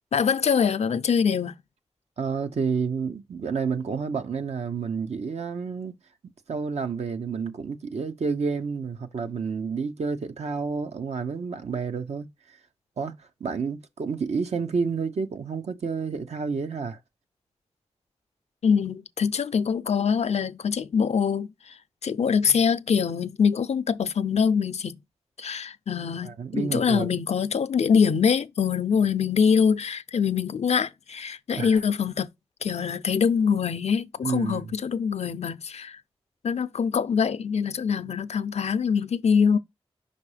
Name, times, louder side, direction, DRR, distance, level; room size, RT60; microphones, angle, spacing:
voice 1, 0.1-1.6 18.6-25.0 25.4-32.3 32.6-36.0 36.4-39.6, left 6 dB, 80° left, 0.5 m, -24 dB
voice 2, 2.2-6.0 6.5-12.3 13.0-17.0 22.5-22.6 26.2-27.2 31.5-31.8 34.2-34.6, right 5 dB, 85° right, 0.8 m, -30 dB
5.4 x 4.2 x 4.9 m
cardioid pair, 45°, 11 cm